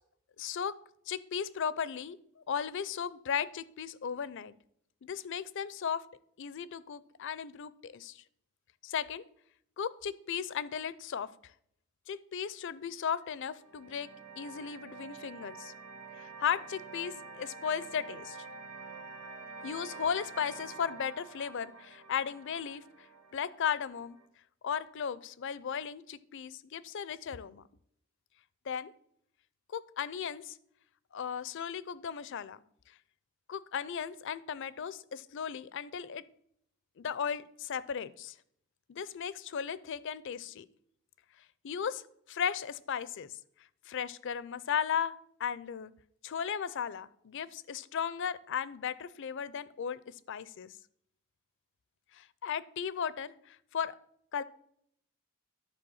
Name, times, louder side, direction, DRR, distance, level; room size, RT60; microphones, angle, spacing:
voice 1, 0.4-0.8 1.1-4.5 5.0-6.0 6.4-8.2 8.8-9.2 9.8-11.3 12.1-14.1 14.4-15.7 16.1-18.5 19.6-22.8 23.3-24.2 24.6-27.6 28.7-28.9 29.7-30.5 31.1-32.6 33.5-36.2 37.0-38.3 38.9-40.7 41.6-42.0 42.3-43.3 43.9-45.1 45.4-45.9 46.2-50.7 52.1-54.0 54.3-54.4, left 7 dB, 60° left, 18 dB, 0.4 m, -36 dB
sound 1, 13.2-24.3, right 4 dB, 90° right, 1.5 m, -48 dB
10.5 x 4.4 x 7.0 m, 0.71 s
head